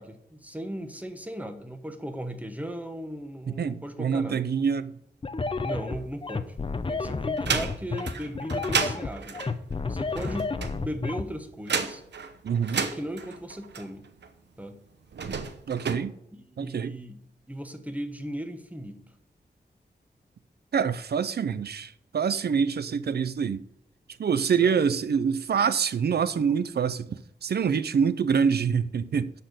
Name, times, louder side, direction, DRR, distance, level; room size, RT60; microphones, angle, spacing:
voice 1, 0.0-4.5 5.6-6.6 6.9-9.4 9.9-12.0 12.7-14.1 14.6-14.8 16.3-19.0 24.4-24.9, right 1 dB, 10° right, 1.1 m, -37 dB
voice 2, 3.5-4.9 12.4-12.8 15.7-16.1 16.6-17.0 20.7-23.6 24.2-29.3, right 6 dB, 65° right, 0.6 m, -26 dB
sound 1, 5.2-11.2, left 4 dB, 30° left, 0.7 m, -30 dB
sound 2, 6.0-6.8 7.2-14.3 15.0-16.0, right 6 dB, 90° right, 0.9 m, -32 dB
11.5 x 4.4 x 7.9 m
wide cardioid pair, 140°, 18 cm